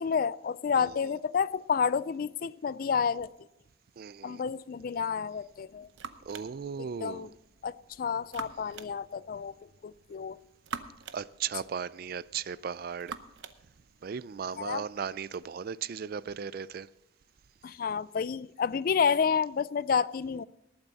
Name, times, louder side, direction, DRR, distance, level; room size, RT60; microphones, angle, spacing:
voice 1, 0.0-3.3 4.2-5.9 7.0-7.3 7.6-9.5 9.8-10.4 14.6-14.8 17.6-20.4, left 6 dB, 45° left, 0.3 m, -30 dB
voice 2, 4.0-4.4 6.3-7.3 11.1-13.1 14.0-16.9, right 7 dB, 50° right, 0.4 m, -36 dB
sound 1, 5.3-15.4, right 5 dB, 75° right, 0.8 m, -48 dB
19.0 x 9.0 x 4.1 m
head